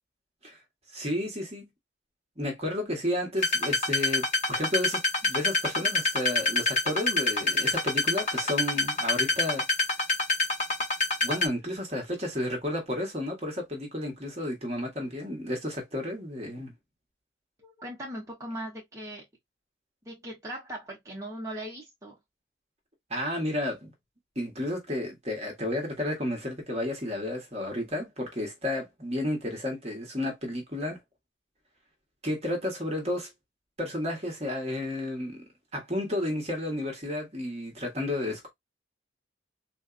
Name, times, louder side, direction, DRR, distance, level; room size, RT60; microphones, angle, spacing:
voice 1, 0.9-1.6 2.4-9.6 11.2-16.7 23.1-23.9 24.3-31.0 32.2-33.3 33.8-35.4 35.7-38.5, left 1 dB, 35° right, 1.5 m, -32 dB
sound 1, 3.4-11.5, left 2 dB, 40° left, 1.4 m, -26 dB
voice 2, 17.6-19.3 20.0-22.2, right 1 dB, 15° right, 1.4 m, -39 dB
3.9 x 3.4 x 2.2 m
head